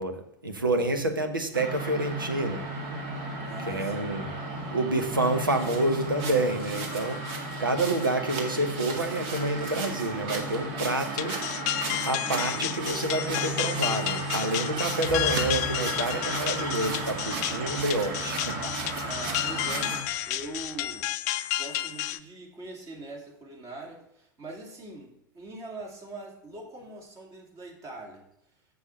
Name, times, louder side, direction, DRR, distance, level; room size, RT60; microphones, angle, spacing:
voice 1, 0.0-2.6 3.7-4.3 4.7-11.4 12.1-18.7, right 2 dB, 85° right, 7 dB, 1.1 m, -28 dB
sound 1, 1.5-20.0, right 2 dB, 45° right, 2.0 m, -34 dB
voice 2, 3.4-4.2 19.0-21.2 21.5-28.2, right 2 dB, 30° right, 0 dB, 2.6 m, -42 dB
sound 2, 11.2-22.2, left 14 dB, 50° left, 0.5 m, -32 dB
sound 3, 15.0-21.1, right 1 dB, 5° right, 2.6 m, -45 dB
6.9 x 6.3 x 7.0 m, 0.76 s
figure-of-eight pair, 90°, 11 cm